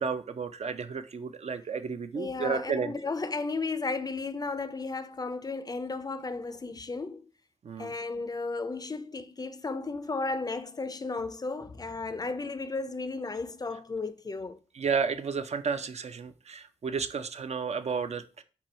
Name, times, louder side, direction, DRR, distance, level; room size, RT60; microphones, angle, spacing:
voice 1, 0.0-2.9 7.6-7.9 14.7-18.4, right 5 dB, 55° right, 0.4 m, -32 dB
voice 2, 2.1-7.2 7.8-14.6, left 3 dB, 30° left, 0.4 m, -34 dB
4.3 x 2.7 x 4.3 m
wide cardioid pair, 90°, 13 cm